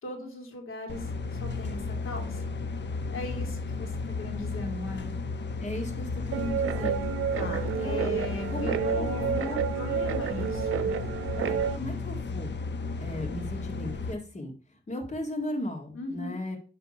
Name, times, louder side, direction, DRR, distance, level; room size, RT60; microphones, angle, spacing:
voice 1, 0.0-2.5 3.1-5.1 7.3-10.9 15.9-16.4, left 2 dB, 75° left, 2 dB, 2.2 m, -38 dB
sound 1, 0.9-14.1, left 4 dB, 55° left, 1.0 m, -34 dB
voice 2, 5.6-7.0 7.5-8.2 8.5-9.6 11.4-12.5 13.0-14.5 14.9-16.6, left 1 dB, 35° left, 0 dB, 1.8 m, -36 dB
Guitar, 6.3-11.8, right 8 dB, 90° right, 0.6 m, -30 dB
10.0 x 3.4 x 5.3 m, 0.38 s
wide cardioid pair, 105°, 21 cm